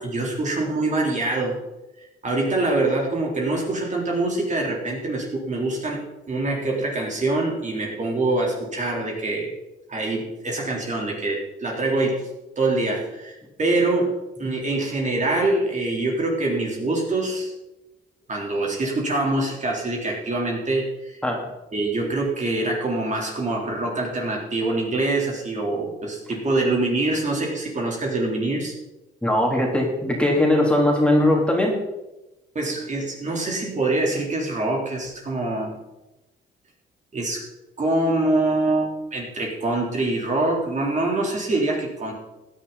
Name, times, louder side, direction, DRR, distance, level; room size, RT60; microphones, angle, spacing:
voice 1, 0.0-1.6 2.2-6.0 6.3-9.5 9.9-12.2 12.6-14.1 14.4-17.5 18.3-21.2 21.7-28.7 32.6-35.8 37.1-37.4 37.8-42.1, right 2 dB, 35° right, -1 dB, 3.7 m, -24 dB
voice 2, 29.2-31.8, left 1 dB, 5° left, -1 dB, 3.3 m, -20 dB
16.0 x 10.0 x 4.1 m, 0.99 s
cardioid pair, 90°, 20 cm